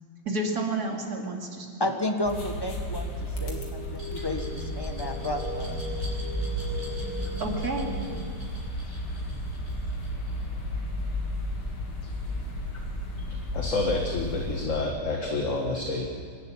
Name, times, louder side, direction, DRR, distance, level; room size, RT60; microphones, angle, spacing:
voice 1, 0.2-1.9 7.4-7.9, right 2 dB, 45° right, 3.1 m, -30 dB
voice 2, 1.8-5.8, left 1 dB, 15° left, 1.3 m, -32 dB
sound 1, 2.2-14.7, equal, 90° left, 3.7 m, -33 dB
sound 2, 2.9-8.2, equal, 75° left, 3.7 m, -39 dB
Glass, 4.0-10.8, right 1 dB, 20° right, 6.8 m, -48 dB
voice 3, 13.5-16.1, left 3 dB, 40° left, 1.8 m, -28 dB
25.5 x 12.0 x 8.8 m
omnidirectional pair, 2.3 m